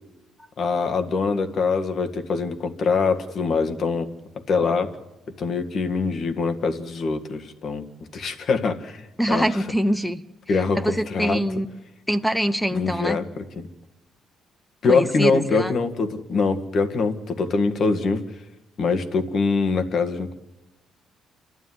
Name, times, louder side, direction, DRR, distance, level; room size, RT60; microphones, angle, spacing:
voice 1, 0.6-4.1 4.5-5.0 5.4-7.8 8.1-9.6 10.5-11.4 12.7-13.7 14.8-18.2 18.8-20.3, left 4 dB, 50° left, 7 dB, 1.8 m, -24 dB
voice 2, 9.2-10.2 10.8-11.7 12.1-13.2 14.9-15.7, equal, 5° left, 11 dB, 0.7 m, -24 dB
29.5 x 12.5 x 9.6 m, 1.1 s
cardioid pair, 125°, 0 cm